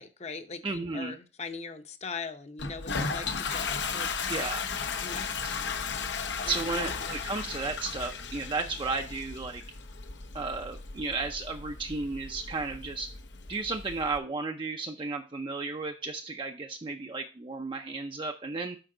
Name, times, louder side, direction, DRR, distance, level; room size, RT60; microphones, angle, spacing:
voice 1, 0.0-4.1 5.0-5.3 6.4-6.8 8.6-8.8, left 4 dB, 40° left, 9 dB, 0.8 m, -41 dB
voice 2, 0.6-1.1 4.3-4.7 5.4-5.5 6.5-9.6 10.3-13.1 13.5-18.8, right 3 dB, 30° right, 4 dB, 0.4 m, -33 dB
Toilet flush, 2.6-14.2, left 5 dB, 85° left, 0.9 m, -35 dB
7.9 x 5.1 x 3.8 m, 0.34 s
head